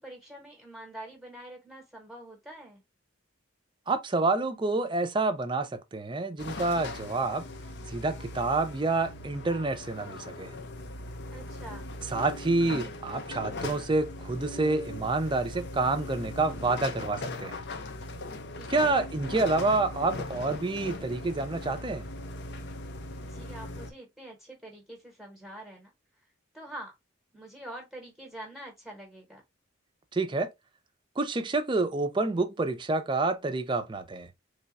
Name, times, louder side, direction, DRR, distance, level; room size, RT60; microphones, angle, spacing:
voice 1, 0.0-2.8 11.3-11.9 18.6-19.0 23.3-25.9 26.5-26.9 27.3-29.4, right 1 dB, ahead, 1.0 m, -45 dB
voice 2, 3.9-7.4 7.9-10.5 12.1-17.6 18.7-22.1 30.1-30.5 31.2-34.3, right 3 dB, 25° right, 0.5 m, -28 dB
sound 1, 6.4-23.9, left 2 dB, 55° left, 0.5 m, -39 dB
3.3 x 2.3 x 3.9 m
head